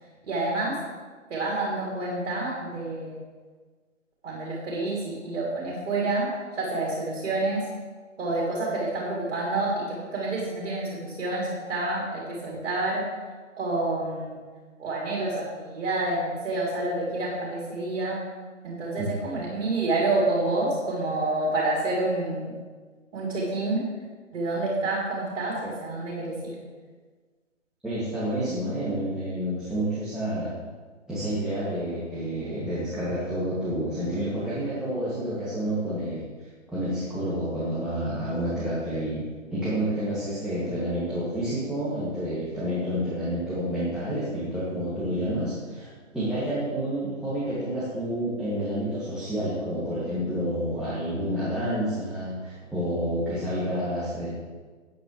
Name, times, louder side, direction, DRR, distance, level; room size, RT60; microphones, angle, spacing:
voice 1, 0.2-0.8 1.3-3.2 4.2-6.3 6.6-7.7 8.2-13.1 13.6-14.4 14.8-18.2 18.6-22.5 23.1-23.8 24.3-26.6, right 2 dB, 55° right, -4 dB, 3.7 m, -28 dB
voice 2, 27.8-30.5 31.1-36.2 36.7-39.2 39.5-54.3, equal, ahead, -13 dB, 2.6 m, -29 dB
14.0 x 9.2 x 3.4 m, 1.4 s
hypercardioid pair, 145°, 39 cm